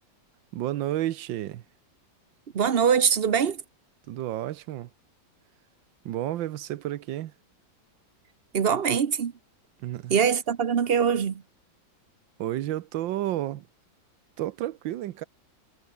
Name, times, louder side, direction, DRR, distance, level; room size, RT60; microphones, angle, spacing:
voice 1, 0.5-1.6 4.1-4.9 6.0-7.3 9.8-10.2 12.4-13.7 14.4-15.2, right 13 dB, 75° right, 1.5 m, -31 dB
voice 2, 2.5-3.6 8.5-9.3 10.1-11.4, right 7 dB, 45° right, 0.8 m, -23 dB
omnidirectional pair, 2.1 m